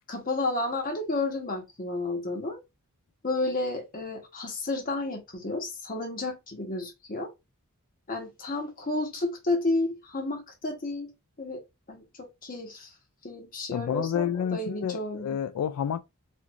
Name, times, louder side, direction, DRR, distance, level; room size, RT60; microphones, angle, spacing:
voice 1, 0.1-2.6 3.2-7.3 8.1-11.1 11.4-11.6 11.9-12.9 13.2-15.3, left 2 dB, 40° left, 1.0 m, -31 dB
voice 2, 13.7-16.0, left 8 dB, 90° left, 0.3 m, -29 dB
4.4 x 2.5 x 2.4 m
head